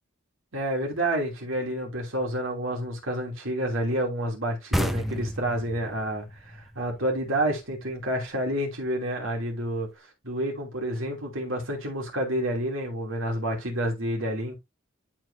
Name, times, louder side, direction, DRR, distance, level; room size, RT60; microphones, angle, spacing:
voice 1, 0.5-9.9 10.2-14.6, right 1 dB, 80° right, 3.0 m, -29 dB
sound 1, 4.7-8.1, equal, ahead, 0.7 m, -32 dB
11.5 x 4.7 x 2.7 m
head